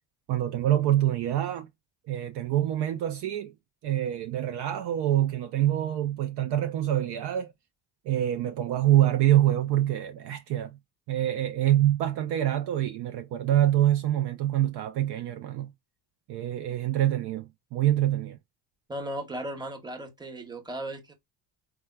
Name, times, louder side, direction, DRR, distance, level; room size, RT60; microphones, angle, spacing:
voice 1, 0.3-1.7 2.1-3.5 3.8-7.5 8.1-10.8 11.1-15.7 16.3-18.4, right 12 dB, 55° right, 0.5 m, -25 dB
voice 2, 18.9-21.1, right 1 dB, 10° right, 0.8 m, -36 dB
3.5 x 2.2 x 2.2 m
hypercardioid pair, 60°, 50 cm